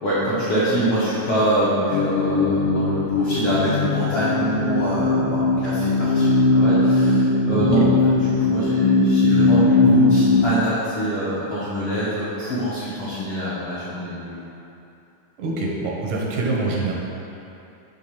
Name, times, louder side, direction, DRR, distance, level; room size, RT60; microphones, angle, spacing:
voice 1, 0.0-14.4, right 1 dB, 70° left, -11 dB, 1.3 m, -25 dB
sound 1, 1.9-10.5, left 3 dB, 90° left, 2.2 m, -19 dB
voice 2, 15.4-16.9, right 2 dB, 80° right, -3 dB, 2.4 m, -25 dB
6.5 x 3.6 x 5.7 m, 2.8 s
omnidirectional pair, 3.7 m